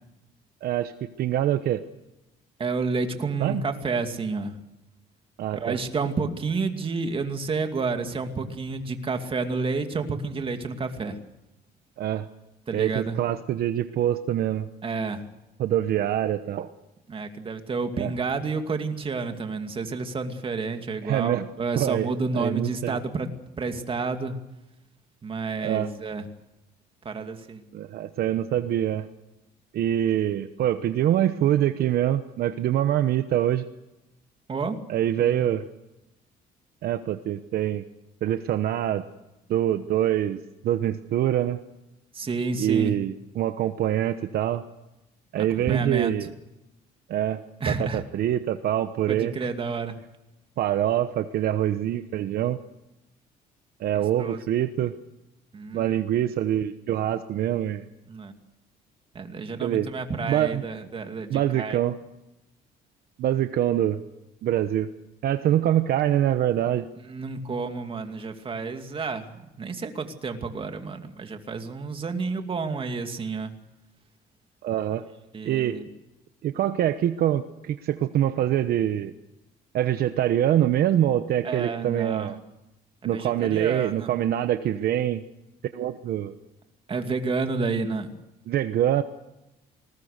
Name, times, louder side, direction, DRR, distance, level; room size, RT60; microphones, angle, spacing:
voice 1, 0.6-0.9 1.2-1.8 3.4-3.6 5.4-5.8 12.0-12.3 12.7-14.7 15.6-16.7 18.0-18.1 21.0-21.5 21.8-22.1 22.3-23.0 25.6-25.9 27.7-29.1 29.7-33.6 34.9-35.7 36.8-37.8 38.2-39.1 39.5-41.6 42.6-44.6 45.3-46.3 47.1-49.5 50.6-52.6 53.8-54.9 55.7-57.8 59.6-59.9 60.3-60.6 61.3-62.0 63.2-64.0 64.4-64.9 65.2-66.8 74.6-75.0 75.4-75.8 76.4-79.1 79.7-82.4 83.0-85.2 85.7-86.3 88.5-89.0, right 11 dB, 65° right, 10 dB, 1.0 m, -25 dB
voice 2, 2.6-4.6 5.5-11.2 12.7-13.3 14.8-15.2 17.1-23.3 23.6-24.4 25.2-26.3 27.0-27.6 34.5-34.8 35.2-35.4 42.1-43.0 45.4-46.1 47.6-48.0 49.1-50.0 54.2-54.4 55.5-56.0 58.1-58.3 59.1-61.8 67.0-73.5 75.3-75.9 81.4-82.4 83.0-84.1 86.9-88.1, right 4 dB, 30° right, 6 dB, 2.4 m, -30 dB
26.5 x 20.5 x 6.7 m, 0.96 s
cardioid pair, 110°, 17 cm